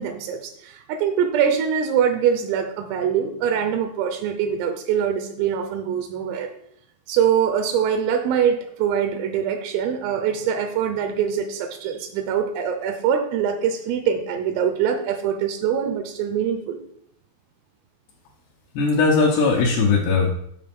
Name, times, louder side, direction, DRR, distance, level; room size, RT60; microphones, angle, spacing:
voice 1, 0.0-6.5 7.1-16.8, right 8 dB, 85° right, 5 dB, 3.3 m, -23 dB
voice 2, 18.7-20.3, left 4 dB, 80° left, -3 dB, 2.3 m, -19 dB
8.4 x 5.0 x 3.5 m, 0.69 s
omnidirectional pair, 5.9 m